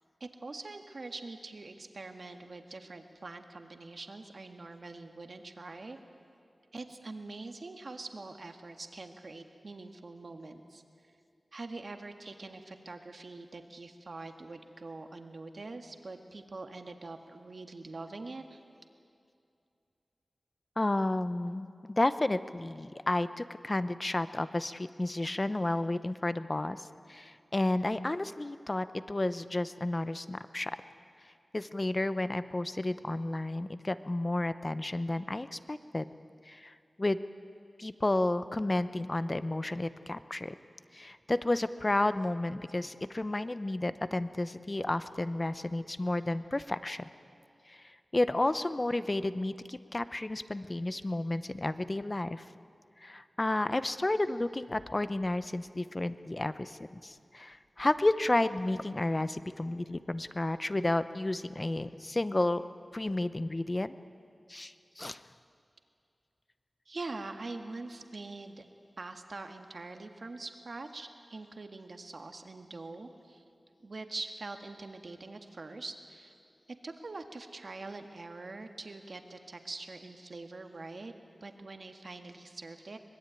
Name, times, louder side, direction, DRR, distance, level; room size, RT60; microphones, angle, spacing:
voice 1, 0.2-6.0 6.7-10.8 11.5-18.6 66.8-68.6 69.0-73.4 73.8-76.3 76.8-81.1 81.4-83.0, right 3 dB, 65° right, 6 dB, 1.8 m, -44 dB
voice 2, 20.8-30.7 31.2-36.1 36.5-37.2 37.8-40.5 40.9-47.0 47.7-52.5 53.0-62.6 62.9-64.0 64.5-65.2, left 2 dB, 30° left, 13 dB, 0.8 m, -32 dB
24.5 x 20.5 x 9.2 m, 2.5 s
wide cardioid pair, 90°, 0 cm